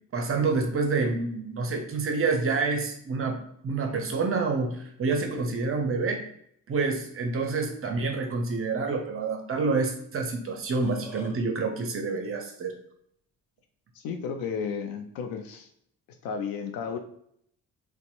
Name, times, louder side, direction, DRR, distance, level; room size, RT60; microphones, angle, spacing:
voice 1, 0.1-3.4 3.6-6.2 6.7-12.7, right 4 dB, 30° right, 3 dB, 0.6 m, -28 dB
Burping eructation, 10.5-11.3, equal, 5° right, 1.0 m, -43 dB
voice 2, 13.9-15.7 16.2-17.0, left 6 dB, 50° left, 5 dB, 0.5 m, -33 dB
4.0 x 2.1 x 2.5 m, 0.68 s
figure-of-eight pair, 40°, 49 cm